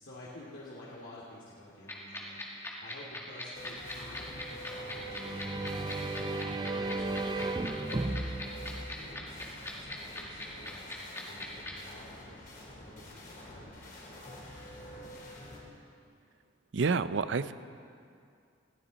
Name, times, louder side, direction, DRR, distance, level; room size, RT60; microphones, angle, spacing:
voice 1, 0.0-6.2 6.7-12.5 12.9-14.3, left 1 dB, 75° left, -8 dB, 2.6 m, -51 dB
sound 1, 1.9-11.7, left 2 dB, 15° left, 2.0 m, -39 dB
sound 2, 3.5-15.6, equal, 45° left, 3.6 m, -47 dB
sound 3, 4.9-9.6, right 2 dB, 20° right, 0.5 m, -35 dB
voice 2, 16.7-17.5, right 4 dB, 70° right, 13 dB, 0.5 m, -28 dB
20.5 x 15.5 x 4.1 m, 2.4 s
head